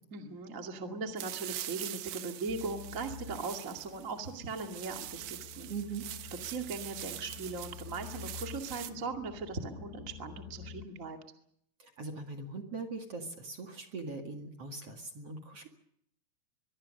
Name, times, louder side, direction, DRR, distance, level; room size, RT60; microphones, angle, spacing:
voice 1, 0.1-5.7 6.4-11.2, right 4 dB, 30° right, 3 dB, 1.7 m, -39 dB
sound 1, 1.2-8.9, right 13 dB, 70° right, 2.9 m, -44 dB
sound 2, 2.5-10.9, left 7 dB, 70° left, 1.9 m, -49 dB
voice 2, 5.7-6.1 11.8-15.7, right 4 dB, 45° right, 3 dB, 2.4 m, -41 dB
23.5 x 23.0 x 6.6 m, 0.71 s
omnidirectional pair, 4.9 m